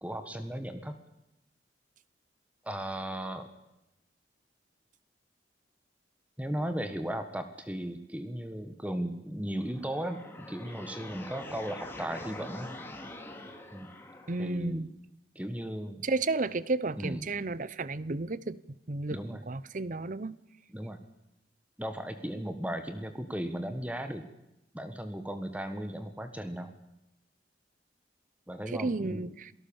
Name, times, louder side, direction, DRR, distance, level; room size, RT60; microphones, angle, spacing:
voice 1, 0.0-0.9 2.6-3.5 6.4-12.8 13.7-13.9 14.4-14.8 15.3-16.0 17.0-17.3 19.1-19.4 20.7-21.0 21.8-24.2 24.7-26.7 28.5-29.2, right 1 dB, 10° right, 8 dB, 1.5 m, -36 dB
sound 1, 9.6-14.6, left 1 dB, 10° left, 2.8 m, -45 dB
voice 2, 14.3-14.9 16.0-18.6 18.9-19.2 19.5-20.4 28.7-29.5, right 3 dB, 45° right, 18 dB, 0.8 m, -32 dB
27.5 x 18.5 x 7.2 m, 0.88 s
head